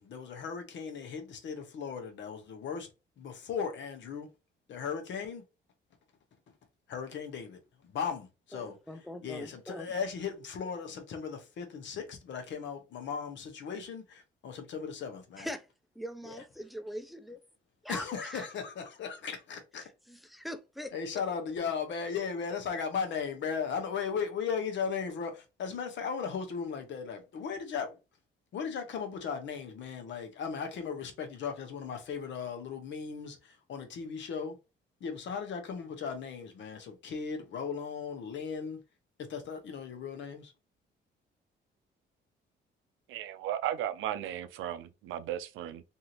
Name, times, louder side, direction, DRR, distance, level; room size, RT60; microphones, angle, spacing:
voice 1, 0.0-2.9 3.2-4.3 4.7-5.4 6.9-8.8 9.2-15.5 17.9-19.9 20.9-28.0 28.5-34.6 35.0-38.8 39.2-40.5, left 6 dB, 65° left, 0.8 m, -37 dB
voice 2, 8.5-10.0 15.4-15.7 16.0-17.4 17.8-18.5 19.8-21.2, equal, ahead, 0.4 m, -42 dB
voice 3, 43.1-45.8, right 11 dB, 85° right, 0.4 m, -35 dB
2.7 x 2.5 x 2.8 m
cardioid pair, 90°, 20 cm